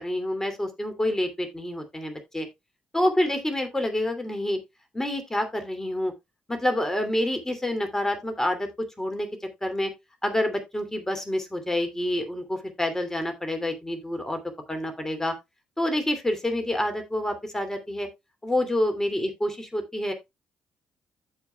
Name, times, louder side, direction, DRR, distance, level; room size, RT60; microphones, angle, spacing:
voice 1, 0.0-2.5 2.9-4.6 4.9-6.1 6.5-8.7 9.0-9.3 9.6-9.9 10.2-14.4 14.7-15.3 15.8-18.1 18.4-20.1, left 1 dB, 15° left, 2.7 m, -27 dB
14.5 x 5.0 x 2.3 m
hypercardioid pair, 45°, 4 cm